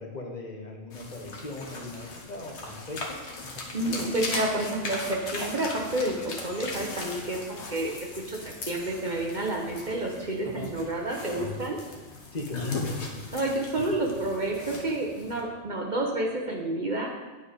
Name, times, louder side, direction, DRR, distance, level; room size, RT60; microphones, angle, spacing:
voice 1, 0.0-3.2 3.8-4.0 10.4-10.7 12.3-12.8 13.0-13.3, left 2 dB, 40° left, 0 dB, 1.0 m, -39 dB
sound 1, 0.9-15.4, left 3 dB, 65° left, 1.4 m, -38 dB
voice 2, 3.7-11.8 13.3-17.1, right 1 dB, 40° right, 0 dB, 0.9 m, -30 dB
9.4 x 4.5 x 5.0 m, 1.2 s
omnidirectional pair, 1.3 m